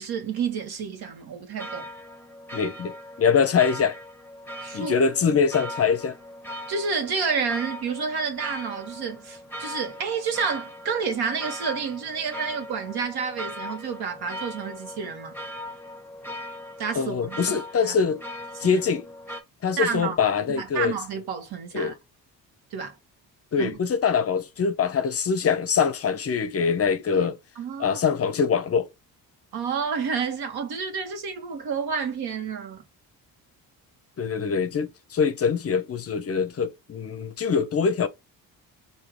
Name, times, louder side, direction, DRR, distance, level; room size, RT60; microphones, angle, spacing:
voice 1, 0.0-1.9 4.6-4.9 6.7-15.3 16.8-17.9 18.5-18.8 19.8-20.2 20.5-21.9 22.7-22.9 23.6-23.8 27.1-27.3 27.6-28.0 29.5-32.8, right 6 dB, 75° right, 1.4 m, -30 dB
sound 1, 1.6-19.4, equal, 5° left, 0.8 m, -39 dB
voice 2, 2.5-4.0 4.7-6.2 16.9-18.2 18.6-19.0 19.6-20.9 21.7-21.9 23.5-27.4 27.8-28.9 34.2-38.1, left 6 dB, 40° left, 0.6 m, -23 dB
4.7 x 2.8 x 3.1 m
cardioid pair, 105°, 38 cm